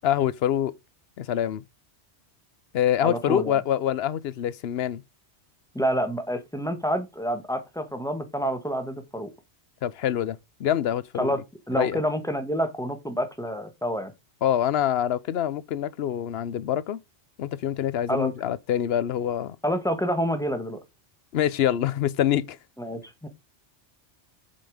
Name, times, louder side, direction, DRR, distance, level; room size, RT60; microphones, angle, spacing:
voice 1, 0.0-0.7 1.2-1.6 2.7-5.0 9.8-11.3 11.7-12.0 14.4-17.0 17.4-19.6 21.3-22.6, left 10 dB, 65° left, 0.8 m, -25 dB
voice 2, 3.0-3.6 5.8-9.3 11.2-11.4 11.7-14.1 18.1-18.3 19.6-20.8 22.8-23.3, equal, 5° left, 1.6 m, -28 dB
7.6 x 5.7 x 5.0 m
omnidirectional pair, 1.2 m